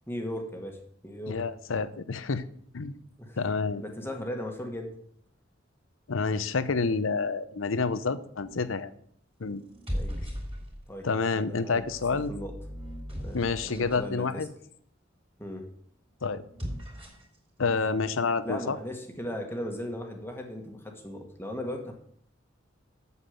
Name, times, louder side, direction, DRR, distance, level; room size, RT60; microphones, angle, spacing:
voice 1, 0.1-1.4 3.2-3.4 3.8-4.9 9.9-10.2 10.9-11.8 12.1-12.5 13.2-14.4 15.4-15.7 18.4-21.9, left 1 dB, 10° left, 3 dB, 1.4 m, -37 dB
voice 2, 1.3-2.4 2.7-3.0 3.4-3.8 6.1-8.9 9.4-9.6 11.0-12.3 13.3-14.5 16.2-16.4 17.6-18.8, left 4 dB, 85° left, 14 dB, 0.7 m, -28 dB
sound 1, 8.4-8.8 9.6-11.0 11.7-14.0 16.4-17.4, equal, 30° right, 3.5 m, -38 dB
8.2 x 7.2 x 7.7 m, 0.67 s
head